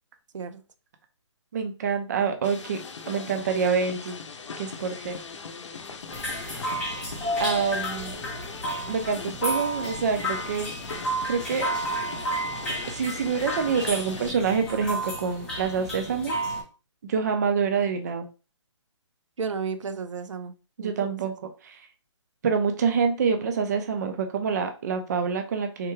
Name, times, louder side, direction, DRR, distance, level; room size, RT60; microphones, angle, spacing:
voice 1, 1.5-2.8 3.1-4.2 4.6-5.1 6.3-6.9 7.4-8.2 8.9-10.7 11.3-11.7 12.9-16.4 17.0-18.3 20.8-21.3 21.6-21.8 22.4-25.9, right 6 dB, 35° right, 6 dB, 0.4 m, -26 dB
sound 1, 2.4-14.3, left 5 dB, 70° left, 0.6 m, -40 dB
sound 2, 6.1-16.6, right 1 dB, 5° left, 0.6 m, -31 dB
voice 2, 19.4-21.3, right 5 dB, 80° right, 9 dB, 0.6 m, -33 dB
3.5 x 2.2 x 3.1 m, 0.31 s
hypercardioid pair, 165°, 16 cm